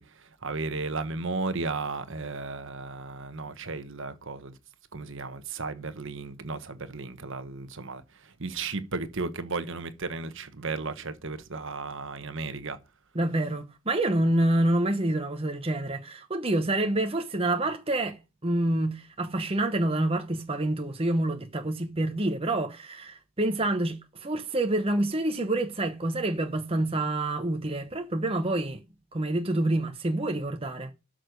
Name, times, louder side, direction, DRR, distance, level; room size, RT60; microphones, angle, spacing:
voice 1, 0.0-4.5 4.9-12.8, right 3 dB, 60° right, 1.2 m, -34 dB
voice 2, 13.1-28.8 29.1-30.9, right 1 dB, 25° right, 1.0 m, -27 dB
12.5 x 6.5 x 5.3 m
head